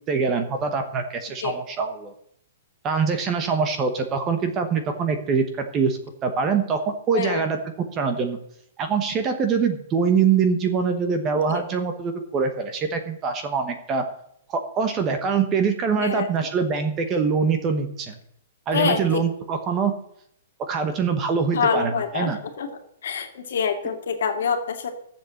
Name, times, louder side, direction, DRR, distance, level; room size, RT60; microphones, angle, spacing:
voice 1, 0.1-2.1 2.8-6.8 7.1-7.6 7.9-8.4 8.8-14.0 14.5-18.2 18.7-19.9 20.7-22.4, right 5 dB, 15° right, 7 dB, 1.1 m, -24 dB
voice 2, 15.9-16.3 18.7-19.2 21.5-22.7 23.0-25.0, left 6 dB, 60° left, 5 dB, 2.3 m, -26 dB
14.5 x 7.4 x 7.7 m, 0.71 s
hypercardioid pair, 180°, 0 cm